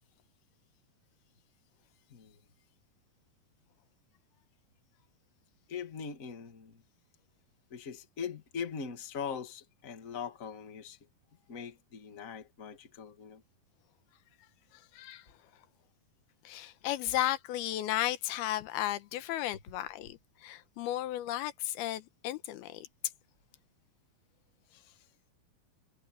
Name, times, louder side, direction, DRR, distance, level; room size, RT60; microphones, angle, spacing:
voice 1, 2.1-2.4 5.7-6.8 7.7-11.0 11.5-13.4, left 6 dB, 30° left, 1.7 m, -41 dB
voice 2, 16.4-22.9, left 14 dB, 90° left, 3.0 m, -34 dB
omnidirectional pair, 4.3 m